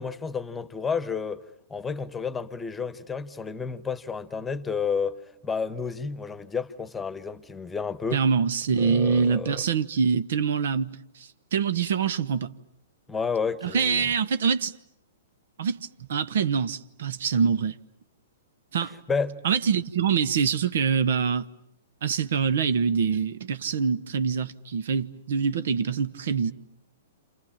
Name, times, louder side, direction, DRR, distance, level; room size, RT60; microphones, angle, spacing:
voice 1, 0.0-1.4 1.7-8.2 8.8-9.6 13.1-14.1 19.1-19.4, left 5 dB, 10° left, 1.3 m, -31 dB
voice 2, 8.1-12.5 13.6-14.7 15.6-17.7 18.7-18.9 19.4-21.5 22.0-26.5, right 6 dB, 65° right, 1.2 m, -25 dB
29.0 x 28.0 x 7.3 m
hypercardioid pair, 120°, 0 cm